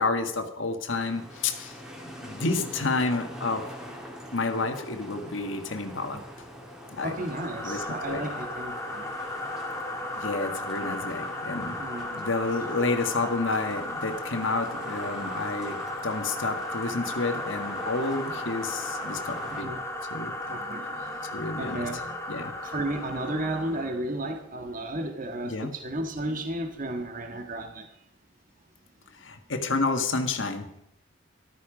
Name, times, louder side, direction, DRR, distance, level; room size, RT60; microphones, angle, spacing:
voice 1, 0.0-1.8 2.2-3.7 4.3-6.2 6.9-7.2 7.6-8.2 10.1-11.8 12.1-19.7 20.1-20.3 21.3-21.9 22.3-22.5 25.5-25.7 29.2-30.7, left 3 dB, 65° left, 7 dB, 1.7 m, -30 dB
sound 1, 0.9-19.6, equal, 5° right, 2.4 m, -43 dB
sound 2, 7.0-24.0, left 1 dB, 15° left, 1.8 m, -35 dB
voice 2, 7.0-9.1 11.8-12.1 19.6-19.8 20.3-22.2 22.6-27.9, right 1 dB, 40° right, 5 dB, 1.6 m, -34 dB
14.0 x 13.0 x 5.1 m, 0.80 s
head